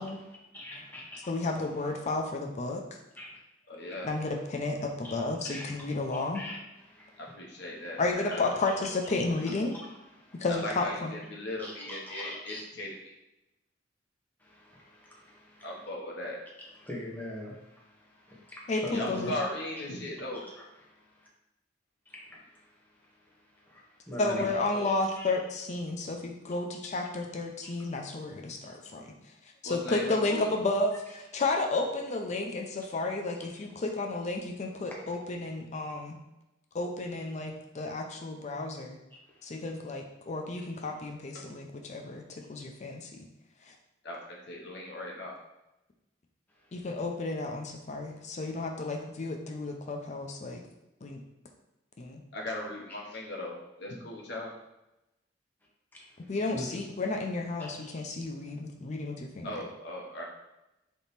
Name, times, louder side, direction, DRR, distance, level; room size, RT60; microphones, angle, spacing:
voice 1, 0.0-2.1 3.2-3.4 3.8-4.5 5.0-8.0 8.3-8.7 9.0-9.1 9.4-10.5 11.6-12.6 14.4-15.9 16.6-19.6 20.3-21.3 22.0-24.5 24.8-25.3 27.6-27.9 32.8-32.9 34.9-35.3 39.1-39.7 40.6-40.7 46.5-46.9 52.9-53.2 55.9-56.8 57.6-57.9, left 1 dB, 10° left, -4 dB, 1.0 m, -46 dB
voice 2, 1.3-2.8 4.0-6.4 8.0-9.7 10.4-11.1 18.7-18.8 19.1-19.3 24.2-29.1 29.6-30.9 31.3-36.2 36.7-39.0 39.4-43.1 46.7-50.6 51.0-51.2 52.0-52.2 56.3-59.5, left 2 dB, 40° left, 2 dB, 0.5 m, -32 dB
voice 3, 3.7-4.1 7.2-8.5 10.5-12.9 15.6-16.4 18.9-20.4 24.4-24.9 29.6-30.5 41.3-41.4 44.0-45.4 52.3-54.5 59.4-60.3, left 1 dB, 65° left, -2 dB, 0.9 m, -38 dB
3.5 x 2.9 x 4.1 m, 0.94 s
head